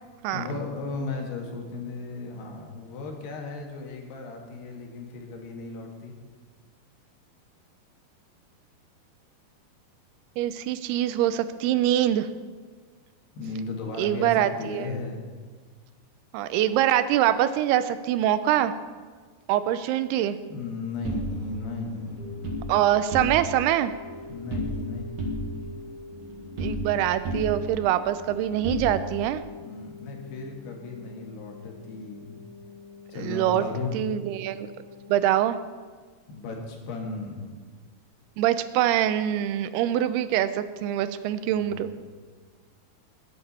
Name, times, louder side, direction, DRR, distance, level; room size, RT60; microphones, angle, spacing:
voice 1, 0.3-6.1 13.3-15.2 20.5-22.3 24.3-25.3 29.6-32.4 33.1-33.9 36.3-37.6 41.4-42.0, left 3 dB, 85° left, 1 dB, 4.0 m, -36 dB
voice 2, 10.4-12.3 14.0-14.9 16.3-18.7 19.5-20.4 22.7-23.9 26.6-29.4 33.2-33.6 33.9-34.7 35.1-35.6 38.4-41.9, right 12 dB, 90° right, 12 dB, 2.7 m, -24 dB
sound 1, 20.2-35.2, left 4 dB, 25° left, 0.7 m, -46 dB
sound 2, 21.0-22.6 23.0-23.7 23.9-24.9 25.2-27.0 27.2-29.3, equal, 50° right, 2.4 m, -33 dB
20.0 x 9.4 x 4.3 m, 1.5 s
omnidirectional pair, 4.5 m